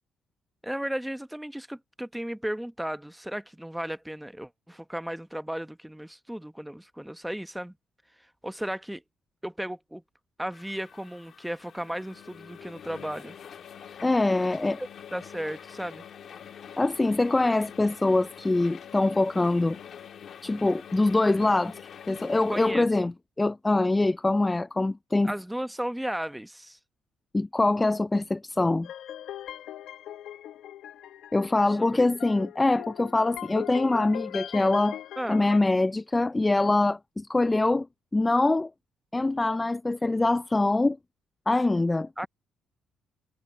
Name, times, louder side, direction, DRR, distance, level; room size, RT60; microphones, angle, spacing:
voice 1, 0.6-7.7 8.4-9.0 9.4-10.0 10.4-13.3 14.8-16.0 22.5-23.1 25.2-26.8 31.9-32.1 32.4-32.5 35.2-35.4 42.2-42.3, right 1 dB, 5° right, 0.9 m, -35 dB
sound 1, 10.5-22.7, left 8 dB, 55° left, 1.8 m, -46 dB
voice 2, 14.0-14.8 16.8-19.8 20.4-21.8 22.1-25.3 27.3-28.9 31.3-35.0 35.3-37.9 38.1-38.7 39.1-41.0 41.5-42.3, left 2 dB, 15° left, 0.3 m, -24 dB
sound 2, 28.8-35.6, left 11 dB, 70° left, 1.1 m, -40 dB
cardioid pair, 105°, 0 cm